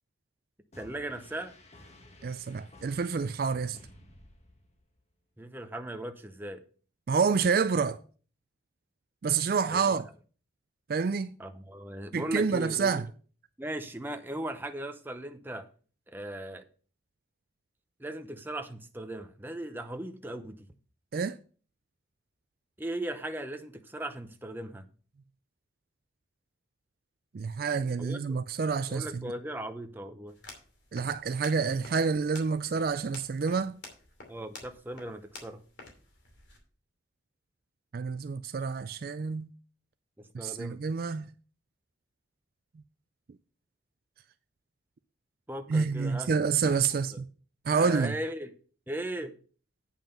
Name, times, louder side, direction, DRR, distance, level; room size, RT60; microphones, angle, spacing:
sound 1, 0.7-5.0, left 1 dB, 35° left, 1.2 m, -54 dB
voice 1, 0.8-1.5 5.4-6.6 9.7-10.0 11.4-13.0 13.6-15.7 16.1-16.6 18.0-20.6 22.8-24.9 28.0-28.4 28.9-30.3 34.3-35.6 40.2-40.8 45.5-46.3 47.7-48.5 48.9-49.3, right 1 dB, 10° right, 0.7 m, -38 dB
voice 2, 2.2-3.8 7.1-8.0 9.2-10.1 10.9-11.3 12.1-13.0 21.1-21.4 27.3-29.3 30.9-33.8 37.9-39.5 40.3-41.3 45.7-47.3 47.7-48.1, right 5 dB, 50° right, 0.3 m, -28 dB
sound 2, 30.3-36.6, left 3 dB, 60° left, 2.6 m, -51 dB
8.9 x 5.8 x 5.3 m
head